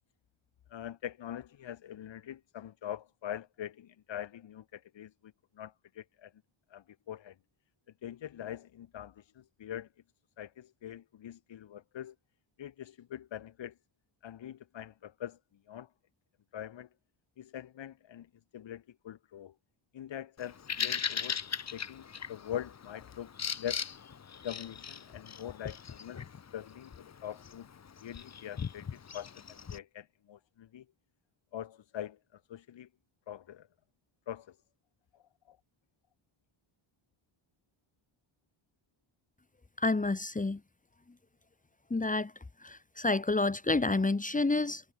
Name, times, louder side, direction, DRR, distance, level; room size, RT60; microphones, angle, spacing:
voice 1, 0.7-6.3 6.7-7.3 8.0-9.9 10.4-12.1 12.6-13.7 14.2-15.4 15.7-15.9 16.5-16.9 17.4-18.3 18.5-19.5 19.9-21.4 21.7-23.3 23.6-23.9 24.4-26.2 26.5-27.7 28.0-29.3 29.7-30.8 31.5-32.9 33.3-33.7 34.3-34.5 35.5-35.6, left 10 dB, 65° left, 5.1 m, -43 dB
Bird vocalization bird call bird song, 20.4-29.8, left 7 dB, 35° left, 1.6 m, -39 dB
voice 2, 39.8-40.6 41.9-42.3 42.6-44.8, left 3 dB, 15° left, 2.3 m, -29 dB
cardioid pair, 120°, 47 cm